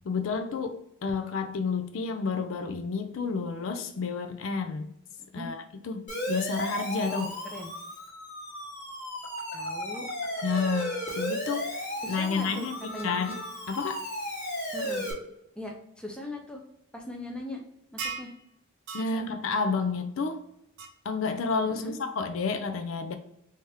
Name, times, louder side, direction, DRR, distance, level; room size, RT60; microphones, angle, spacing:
voice 1, 0.0-4.9 5.3-7.3 10.4-13.4 13.7-14.0 18.9-20.4 21.0-23.2, left 4 dB, 65° left, 8 dB, 0.4 m, -30 dB
voice 2, 5.2-5.5 7.1-7.7 9.5-10.1 12.0-13.2 14.7-15.1 15.5-16.6 16.9-17.6 17.9-18.3 19.1-19.4 21.6-22.0, left 1 dB, 5° left, 0 dB, 0.6 m, -40 dB
Siren, 6.1-15.1, equal, 40° left, 1.1 m, -35 dB
sound 1, 18.0-18.3 18.9-19.1 20.8-20.9, right 5 dB, 55° right, 0.5 m, -35 dB
3.4 x 2.8 x 3.3 m, 0.79 s
head